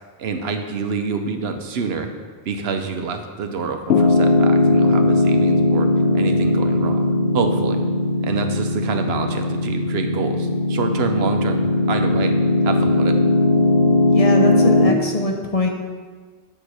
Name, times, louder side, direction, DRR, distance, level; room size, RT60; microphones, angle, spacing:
voice 1, 0.2-2.1 2.5-5.9 6.1-7.1 7.3-7.8 8.2-11.6 11.9-12.3 12.6-13.2, right 5 dB, 80° right, 6 dB, 0.9 m, -27 dB
Piano, 3.9-14.9, left 2 dB, 75° left, 0.9 m, -18 dB
voice 2, 14.1-15.7, left 2 dB, 40° left, 2 dB, 0.7 m, -22 dB
8.6 x 2.9 x 6.3 m, 1.5 s
omnidirectional pair, 1.0 m